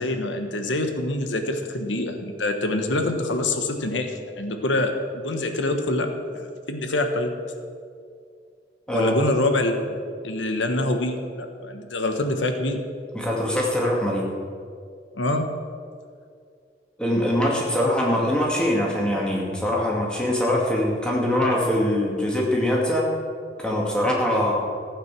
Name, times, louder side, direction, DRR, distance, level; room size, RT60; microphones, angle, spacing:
voice 1, 0.0-7.3 8.9-10.0 10.2-12.8 15.1-15.5, left 2 dB, 90° left, 6 dB, 1.3 m, -25 dB
voice 2, 13.1-14.3 17.0-23.1 23.6-24.7, left 1 dB, 5° left, -3 dB, 2.3 m, -23 dB
15.5 x 9.1 x 6.1 m, 2.3 s
head